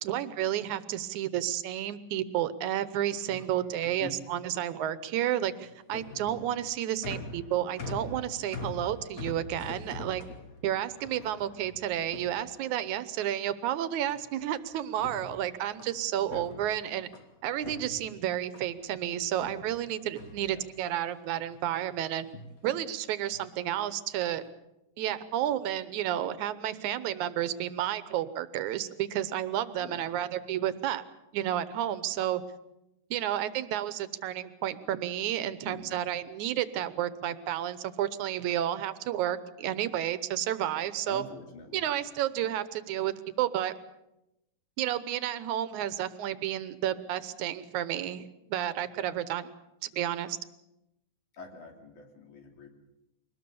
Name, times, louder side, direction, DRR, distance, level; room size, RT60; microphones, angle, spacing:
voice 1, 0.0-10.2 10.6-17.1 17.4-22.3 22.6-24.4 25.0-31.0 31.3-32.4 33.1-41.2 41.7-43.7 44.8-49.5 49.9-50.4, right 11 dB, 75° right, 14 dB, 2.3 m, -31 dB
voice 2, 3.3-4.2 11.2-11.3 16.2-16.7 20.4-20.6 29.8-30.2 35.6-36.0 41.1-41.8 51.3-52.7, left 4 dB, 75° left, 3 dB, 4.4 m, -46 dB
sound 1, 5.4-13.0 14.1-14.6 14.9-17.3 17.6-18.9 19.4-21.0 21.4-21.9 22.2-22.6 23.3-23.7 24.2-24.5, left 2 dB, 40° left, 1.3 m, -44 dB
23.0 x 19.5 x 7.0 m, 0.90 s
omnidirectional pair, 3.6 m